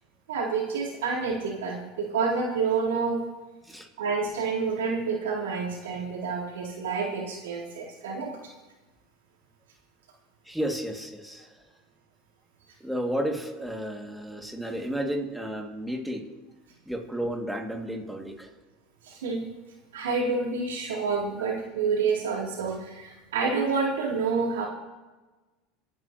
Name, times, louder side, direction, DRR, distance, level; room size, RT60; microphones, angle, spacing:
voice 1, 0.3-3.2 4.0-8.3 19.0-19.4 19.9-24.7, right 4 dB, 90° right, -4 dB, 3.8 m, -28 dB
voice 2, 10.4-11.7 12.8-16.3 16.9-18.5, equal, ahead, 2 dB, 2.4 m, -32 dB
26.0 x 10.0 x 3.0 m, 1.2 s
supercardioid pair, 100°, 0 cm